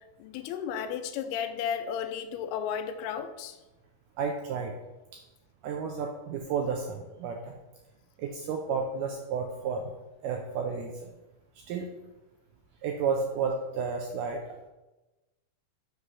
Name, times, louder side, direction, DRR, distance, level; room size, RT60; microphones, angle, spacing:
voice 1, 0.2-3.6, left 8 dB, 90° left, 8 dB, 2.6 m, -33 dB
voice 2, 4.2-4.7 5.1-5.2 5.6-7.6 8.2-9.9 10.2-11.1 11.6-11.9 12.8-14.6, right 5 dB, 85° right, 2 dB, 1.9 m, -32 dB
6.6 x 4.8 x 5.5 m, 1.1 s
omnidirectional pair, 4.4 m